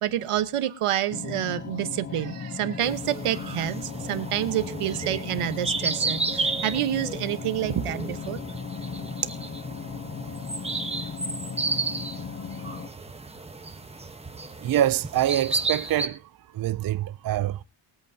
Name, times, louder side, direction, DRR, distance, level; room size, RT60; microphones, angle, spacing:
voice 1, 0.0-8.4, right 12 dB, 85° right, 1.2 m, -28 dB
sound 1, 1.1-12.9, left 6 dB, 30° left, 0.5 m, -36 dB
sound 2, 2.8-16.1, right 3 dB, 10° right, 0.9 m, -33 dB
voice 2, 14.6-16.2 16.5-17.6, right 12 dB, 45° right, 0.5 m, -25 dB
23.0 x 8.3 x 2.7 m
wide cardioid pair, 140°, 50 cm